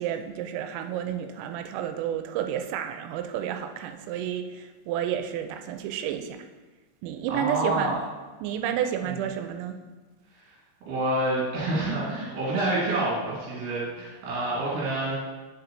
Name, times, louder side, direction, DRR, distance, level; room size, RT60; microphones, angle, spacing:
voice 1, 0.0-6.4 7.0-8.0 8.4-9.8, right 10 dB, 85° right, 6 dB, 3.2 m, -30 dB
voice 2, 7.3-8.0 9.0-9.2 10.4-10.5 10.9-15.2, right 1 dB, 60° right, -7 dB, 3.4 m, -28 dB
7.1 x 7.0 x 2.6 m, 1.3 s
omnidirectional pair, 6.0 m